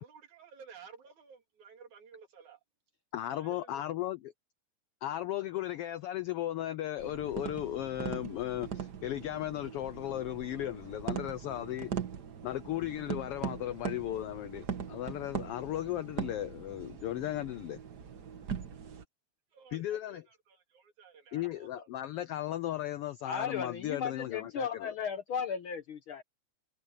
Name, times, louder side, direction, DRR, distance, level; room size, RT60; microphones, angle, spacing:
voice 1, 0.0-2.6 3.3-3.9 19.5-21.9, right 6 dB, 75° right, 4.1 m, -54 dB
voice 2, 3.1-4.3 5.0-11.9 12.4-17.8 19.7-20.2 21.3-24.9, left 13 dB, 90° left, 1.3 m, -36 dB
sound 1, 7.0-19.0, right 8 dB, 50° right, 1.3 m, -41 dB
voice 3, 23.2-26.2, left 6 dB, 60° left, 1.4 m, -35 dB
omnidirectional pair, 3.4 m